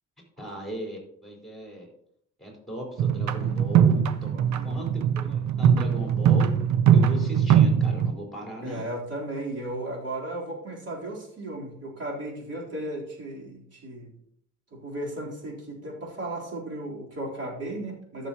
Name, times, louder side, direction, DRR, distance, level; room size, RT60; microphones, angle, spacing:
voice 1, 0.4-1.9 2.4-4.3 4.6-6.6 6.9-8.8, equal, ahead, -2 dB, 4.4 m, -37 dB
sound 1, 3.0-8.1, right 8 dB, 70° right, 0.7 m, -21 dB
voice 2, 4.3-4.8 8.6-14.1 14.7-18.3, right 1 dB, 55° right, -3 dB, 3.8 m, -35 dB
14.0 x 6.8 x 2.9 m, 0.69 s
cardioid pair, 90°, 30 cm